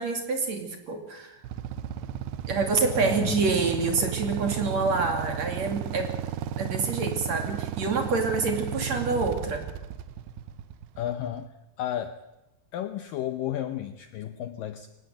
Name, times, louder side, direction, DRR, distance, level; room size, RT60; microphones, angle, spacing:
voice 1, 0.0-1.4 2.5-6.1 6.6-9.7, right 4 dB, 45° right, 5 dB, 3.4 m, -27 dB
Motorcycle / Idling, 1.4-11.4, right 9 dB, 75° right, 2.8 m, -34 dB
voice 2, 3.0-3.4 11.0-11.5 11.8-12.2 12.7-14.9, left 11 dB, 75° left, 10 dB, 2.1 m, -32 dB
24.0 x 18.0 x 8.0 m, 0.96 s
omnidirectional pair, 4.9 m